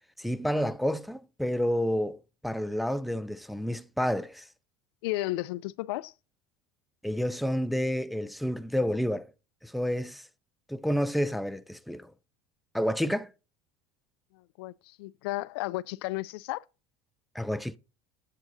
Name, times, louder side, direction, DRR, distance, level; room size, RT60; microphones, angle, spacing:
voice 1, 0.2-4.5 7.0-9.3 9.6-10.2 10.7-12.1 12.7-13.3 17.3-17.8, equal, ahead, 0.4 m, -29 dB
voice 2, 5.0-6.1 14.6-14.7 15.0-16.6, left 18 dB, 90° left, 0.5 m, -33 dB
9.0 x 8.5 x 2.7 m
cardioid pair, 150°, 13 cm